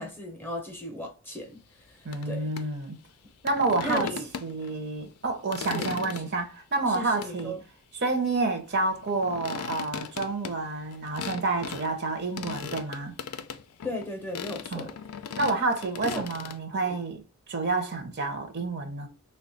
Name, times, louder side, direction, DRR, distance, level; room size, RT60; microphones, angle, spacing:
voice 1, 0.0-2.5 3.8-4.3 5.7-5.9 6.1-6.3 6.9-7.6 13.8-14.9 16.0-16.2 16.8-17.0, equal, 10° left, 0.6 m, -36 dB
voice 2, 2.0-3.0 3.4-4.1 4.4-7.5 7.9-13.2 14.7-14.9 15.4-17.2 17.5-19.1, right 3 dB, 45° right, 0.7 m, -29 dB
sound 1, 2.1-2.3 2.6-2.7 3.5-4.7 5.2-6.3 6.9-7.6 8.9-11.9 12.4-14.1 14.4-16.6, left 7 dB, 85° left, 0.4 m, -38 dB
3.3 x 2.2 x 3.9 m
head